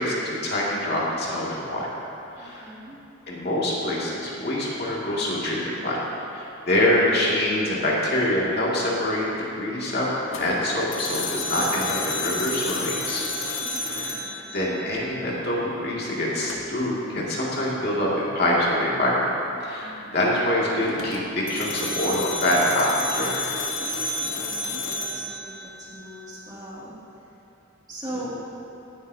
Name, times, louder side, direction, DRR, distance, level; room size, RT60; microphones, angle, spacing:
voice 1, 0.0-1.9 2.4-2.7 3.3-6.0 6.3-9.2 9.5-10.1 10.4-13.3 13.7-14.2 14.5-19.2 19.6-23.3, left 1 dB, 55° left, -5 dB, 2.3 m, -25 dB
voice 2, 2.4-3.0 13.6-14.5 19.8-20.4 24.2-27.0 27.9-28.4, right 1 dB, 20° right, -7 dB, 2.4 m, -40 dB
sound 1, 10.3-15.3 16.4-16.9 20.8-26.3, left 2 dB, 80° left, 1.2 m, -31 dB
17.0 x 11.0 x 2.8 m, 2.9 s
head